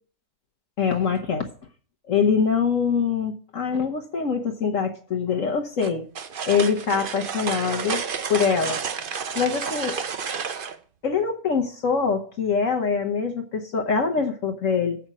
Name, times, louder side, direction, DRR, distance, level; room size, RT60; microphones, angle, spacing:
voice 1, 0.8-1.5 2.1-6.0 6.4-8.0 8.3-8.8 9.3-10.0 11.0-15.0, left 6 dB, 55° left, 2 dB, 1.3 m, -24 dB
sound 1, 5.8-10.8, right 6 dB, 50° right, 0.6 m, -30 dB
8.0 x 6.0 x 7.3 m, 0.43 s
omnidirectional pair, 1.8 m